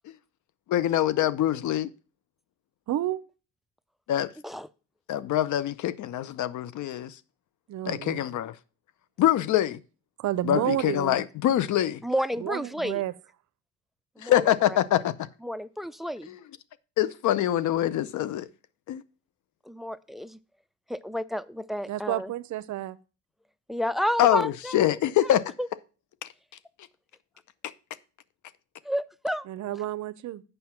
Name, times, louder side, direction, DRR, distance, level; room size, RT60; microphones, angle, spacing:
voice 1, 0.7-1.9 4.1-4.3 5.1-7.2 7.9-8.5 9.2-9.8 10.4-12.0 14.2-15.1 16.3-16.4 17.0-18.5 18.9-19.0 24.2-25.4 26.2-26.3, left 12 dB, 75° left, 0.7 m, -24 dB
voice 2, 2.9-3.2 7.7-8.2 10.2-11.2 12.4-13.1 21.9-23.0 29.5-30.4, right 14 dB, 70° right, 0.6 m, -30 dB
voice 3, 12.0-13.0 14.2-14.8 15.4-16.3 19.7-20.4 20.9-22.3 23.7-24.9 25.6-25.7 28.8-29.5, equal, ahead, 0.3 m, -31 dB
7.7 x 5.5 x 5.7 m
cardioid pair, 90°, 30 cm